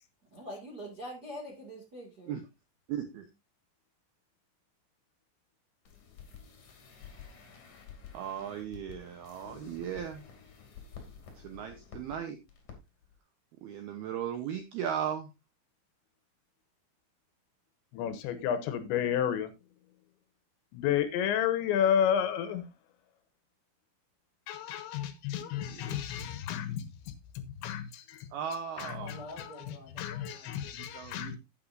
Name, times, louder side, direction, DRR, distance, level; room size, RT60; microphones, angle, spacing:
voice 1, 0.3-2.3 29.0-30.5, equal, 45° right, 1.3 m, -45 dB
voice 2, 2.9-3.3 8.1-10.2 11.3-12.4 13.6-15.3 25.7-25.9 28.3-29.1 30.9-31.4, right 9 dB, 80° right, 2.3 m, -37 dB
sound 1, 5.9-12.2 12.5-12.8 13.0-13.1, left 6 dB, 45° left, 3.4 m, -50 dB
voice 3, 17.9-19.5 20.7-22.7 24.5-28.3 28.8-31.4, left 9 dB, 75° left, 3.0 m, -31 dB
11.5 x 8.9 x 2.6 m
omnidirectional pair, 5.7 m